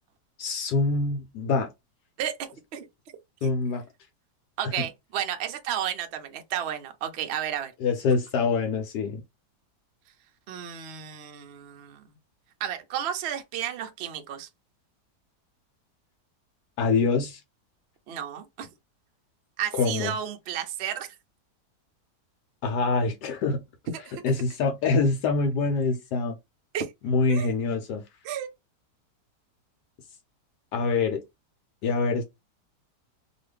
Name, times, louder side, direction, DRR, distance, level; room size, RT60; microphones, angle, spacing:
voice 1, 0.4-1.7 3.4-3.8 7.8-9.2 16.8-17.4 19.7-20.1 22.6-23.6 24.2-26.4 27.0-28.0 30.7-31.2 31.8-32.2, left 4 dB, 80° left, 1.2 m, -25 dB
voice 2, 2.2-2.9 4.6-7.7 10.5-12.0 12.6-14.5 18.1-18.7 19.6-21.2 23.9-24.2 26.7-26.9 27.3-27.5 28.2-28.5, right 10 dB, 65° right, 0.6 m, -32 dB
3.0 x 2.3 x 3.2 m
omnidirectional pair, 1.8 m